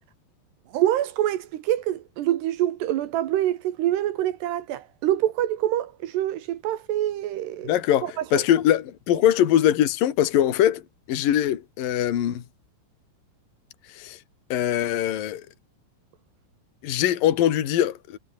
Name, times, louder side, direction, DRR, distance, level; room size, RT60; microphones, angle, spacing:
voice 1, 0.7-7.8 8.0-8.5, right 12 dB, 70° right, 3.0 m, -25 dB
voice 2, 7.7-10.8 11.1-12.4 14.0-14.2 14.5-15.4 16.8-18.2, left 11 dB, 55° left, 3.4 m, -22 dB
omnidirectional pair, 5.7 m